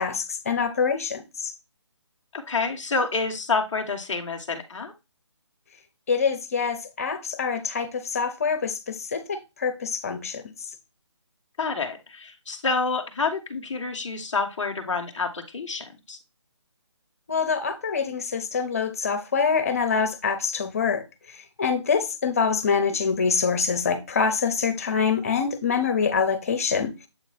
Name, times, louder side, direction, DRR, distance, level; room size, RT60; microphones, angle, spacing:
voice 1, 0.0-1.5 6.1-10.5 17.3-26.9, left 5 dB, 30° left, 0.7 m, -25 dB
voice 2, 2.3-4.9 11.6-16.2, left 4 dB, 5° left, 0.4 m, -28 dB
7.6 x 3.0 x 4.2 m
hypercardioid pair, 170°, 15 cm